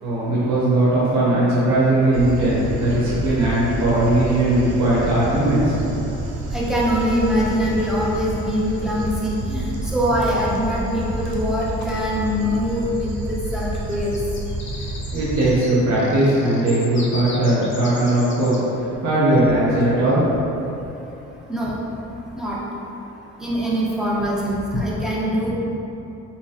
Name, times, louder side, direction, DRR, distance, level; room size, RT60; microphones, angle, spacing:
voice 1, 0.0-6.2 15.1-20.2, right 1 dB, 70° right, -8 dB, 0.9 m, -19 dB
Dog, 2.1-15.5, right 1 dB, 85° right, 0.6 m, -29 dB
voice 2, 6.5-14.2 21.5-21.7 22.4-22.6 23.4-25.5, equal, ahead, -6 dB, 0.7 m, -23 dB
sound 1, 8.5-9.1 10.8-10.9 11.1-11.4 13.7-18.6, left 3 dB, 40° left, 0.6 m, -39 dB
3.8 x 2.9 x 2.8 m, 2.9 s
cardioid pair, 90°, 30 cm